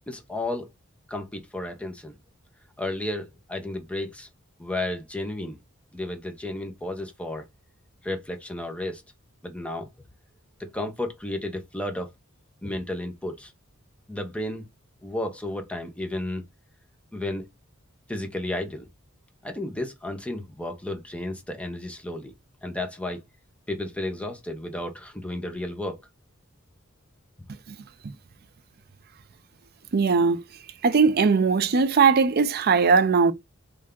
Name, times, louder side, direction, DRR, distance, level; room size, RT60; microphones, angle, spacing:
voice 1, 0.1-0.7 1.1-2.1 2.8-4.3 4.6-5.6 5.9-7.4 8.0-9.0 9.4-9.9 10.6-12.1 12.6-13.5 14.1-14.7 15.0-16.4 17.1-17.4 18.1-18.9 19.4-22.3 22.6-23.2 23.7-26.0, left 1 dB, 5° left, 0.8 m, -32 dB
voice 2, 29.9-30.4 30.8-33.3, right 5 dB, 50° right, 0.5 m, -19 dB
3.3 x 2.7 x 3.6 m
head